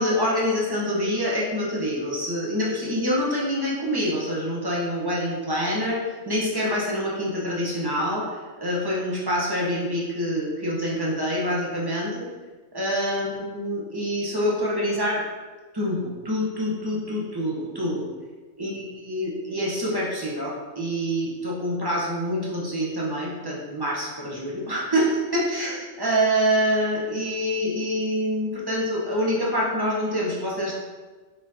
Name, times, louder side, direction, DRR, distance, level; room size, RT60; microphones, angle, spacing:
voice 1, 0.0-12.3 12.7-15.2 15.7-18.1 18.6-30.7, equal, 20° right, -5 dB, 0.7 m, -26 dB
4.7 x 3.7 x 2.7 m, 1.3 s
omnidirectional pair, 1.3 m